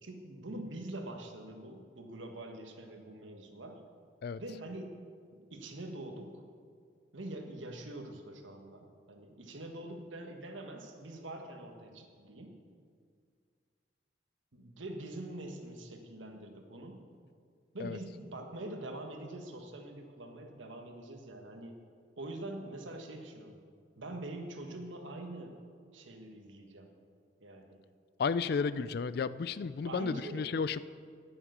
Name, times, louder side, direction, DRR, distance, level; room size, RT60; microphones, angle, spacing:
voice 1, 0.0-3.8 4.4-5.0 5.3-6.4 7.1-12.5 14.5-17.0 17.7-21.8 22.2-23.6 24.0-25.6 25.9-27.0 27.4-27.8 29.8-30.5, right 1 dB, 85° right, 4 dB, 1.4 m, -44 dB
voice 2, 28.2-30.8, left 5 dB, 55° left, 16 dB, 0.3 m, -33 dB
10.0 x 8.6 x 6.6 m, 2.1 s
head